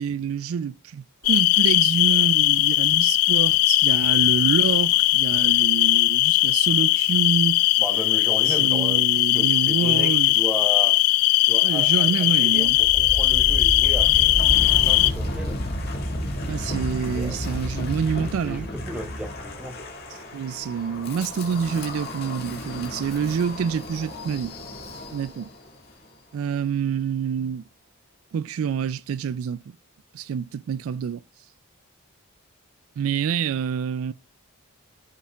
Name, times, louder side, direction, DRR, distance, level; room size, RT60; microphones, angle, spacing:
voice 1, 0.0-7.6 8.5-10.3 11.6-12.8 16.5-18.7 20.3-24.5 25.1-25.5 26.3-27.6 28.3-29.6 30.1-31.2 33.0-34.1, right 7 dB, 75° right, 0.3 m, -27 dB
sound 1, 1.2-15.1, left 18 dB, 85° left, 0.4 m, -19 dB
voice 2, 7.8-11.0 11.5-15.6 15.8-16.0 17.1-17.4 18.4-19.8, equal, 5° right, 1.1 m, -35 dB
Wind, 12.5-25.5, left 1 dB, 45° left, 2.2 m, -31 dB
14.0 x 5.7 x 2.3 m
head